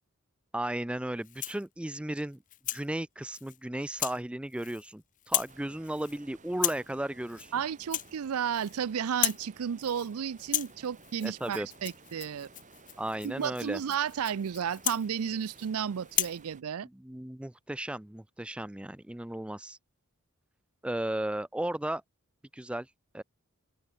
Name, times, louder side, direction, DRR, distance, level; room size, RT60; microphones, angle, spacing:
voice 1, 0.5-2.4 2.7-7.5 11.2-11.7 13.0-13.8 16.9-19.8 20.8-22.0 22.5-22.9 23.1-23.2, right 1 dB, 5° right, 0.3 m, -35 dB
Rattle (instrument), 1.2-1.7 2.2-2.9 3.3-3.6 4.0-4.2 4.5-4.9 5.2-5.6 5.8-6.2 6.5-6.9 7.3-7.5 7.8-8.8 9.1-9.5 9.8-10.1 10.4-15.7 16.1-16.4, left 13 dB, 35° left, 0.8 m, -35 dB
sound 1, 5.5-16.6, right 3 dB, 35° right, 2.3 m, -56 dB
voice 2, 7.5-12.5 13.2-16.9, right 8 dB, 75° right, 0.4 m, -33 dB
open air
head